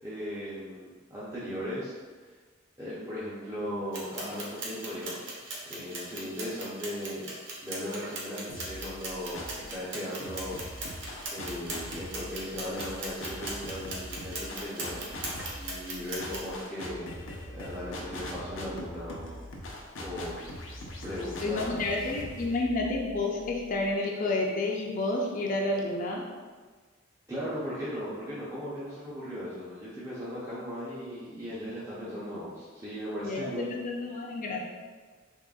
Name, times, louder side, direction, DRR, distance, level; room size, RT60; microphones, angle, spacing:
voice 1, 0.0-2.2 2.8-5.2 5.7-7.3 7.6-10.6 11.3-15.1 15.6-17.2 17.5-19.4 20.0-20.4 21.0-21.9 27.3-33.8, equal, 15° right, -10 dB, 0.6 m, -37 dB
sound 1, 3.9-16.5, right 2 dB, 65° right, 0.7 m, -39 dB
sound 2, 8.5-9.7 10.2-23.9, left 1 dB, 90° left, 0.6 m, -42 dB
voice 2, 21.4-26.2 33.2-34.6, left 2 dB, 45° left, -1 dB, 0.4 m, -30 dB
3.7 x 3.4 x 2.3 m, 1.4 s
head